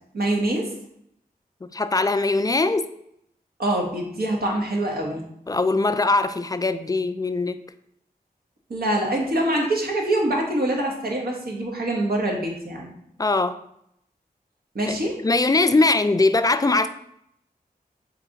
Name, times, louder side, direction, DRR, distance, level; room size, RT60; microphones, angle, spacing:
voice 1, 0.1-0.7 3.6-5.2 8.7-12.9 14.7-15.2, right 1 dB, 70° right, 0 dB, 1.1 m, -24 dB
voice 2, 1.6-2.9 5.5-7.6 13.2-13.6 14.9-15.0 15.2-16.9, left 3 dB, 20° left, 11 dB, 0.3 m, -21 dB
3.7 x 3.2 x 3.9 m, 0.74 s
cardioid pair, 45°, 16 cm